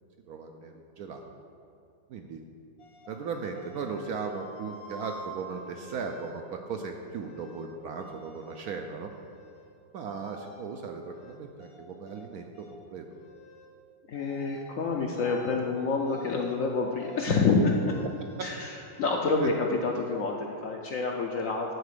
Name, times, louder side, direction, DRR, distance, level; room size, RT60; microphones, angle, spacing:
voice 1, 0.3-1.3 2.1-2.4 3.1-9.1 9.9-13.0 19.4-19.5, right 5 dB, 70° right, 3 dB, 0.9 m, -37 dB
sound 1, 2.8-6.3 6.9-7.7 8.0-8.7 9.1-9.7 10.1-10.6 11.1-12.3 12.5-12.8 13.1-13.7 14.1-14.7 15.0-15.6 16.0-16.6 16.9-17.5 17.9-19.5, left 1 dB, 90° left, 1.8 m, -49 dB
voice 2, 14.1-17.9 18.4-21.7, left 4 dB, 65° left, 1 dB, 0.8 m, -28 dB
9.5 x 4.1 x 6.7 m, 2.6 s
omnidirectional pair, 2.0 m